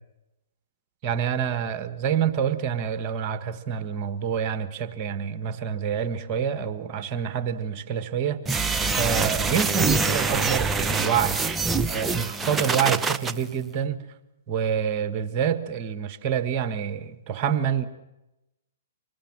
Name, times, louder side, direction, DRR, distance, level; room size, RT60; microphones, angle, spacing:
voice 1, 1.0-8.6 8.9-11.4 11.8-14.0 14.5-17.9, right 8 dB, 35° right, 1.6 m, -27 dB
sound 1, 8.5-13.3, right 4 dB, 10° right, 0.8 m, -25 dB
25.5 x 20.0 x 7.4 m
hypercardioid pair, 125°, 0 cm